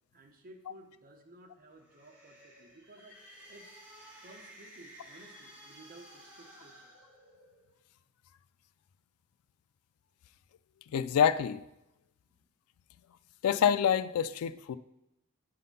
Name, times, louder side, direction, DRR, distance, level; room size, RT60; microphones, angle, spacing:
voice 1, 0.1-3.2 3.5-3.8 4.2-7.0 12.3-12.4, right 1 dB, 45° right, 2 dB, 1.0 m, -55 dB
sound 1, 1.7-7.8, equal, 10° right, 2.0 m, -54 dB
voice 2, 10.9-11.6 13.4-14.8, left 8 dB, 90° left, 16 dB, 0.3 m, -26 dB
8.4 x 3.9 x 5.4 m, 0.89 s
head